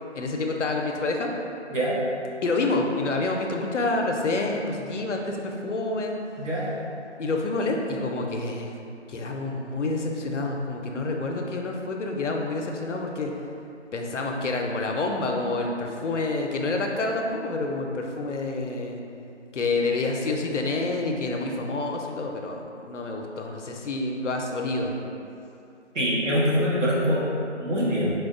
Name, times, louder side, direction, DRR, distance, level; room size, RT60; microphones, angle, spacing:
voice 1, 0.1-1.3 2.4-6.1 7.2-8.7 9.1-13.3 13.9-19.0 19.5-25.0, left 2 dB, 80° left, 2 dB, 0.5 m, -28 dB
voice 2, 25.9-27.2 27.6-28.1, equal, 90° right, -7 dB, 1.1 m, -24 dB
4.2 x 2.2 x 2.4 m, 2.6 s
figure-of-eight pair, 170°, 36 cm